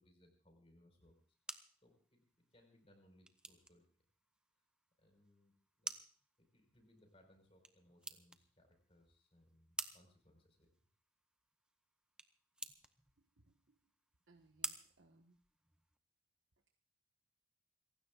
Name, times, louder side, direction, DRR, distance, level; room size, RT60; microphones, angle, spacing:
voice 1, 0.0-1.4 1.8-3.8 5.0-5.9 6.4-10.7, left 1 dB, 30° left, 4 dB, 4.9 m, -69 dB
sound 1, 1.0-16.0, right 2 dB, 5° right, 0.7 m, -52 dB
voice 2, 13.5-13.8 14.3-15.4, right 2 dB, 85° right, 2 dB, 1.4 m, -68 dB
28.0 x 16.0 x 2.5 m, 0.43 s
head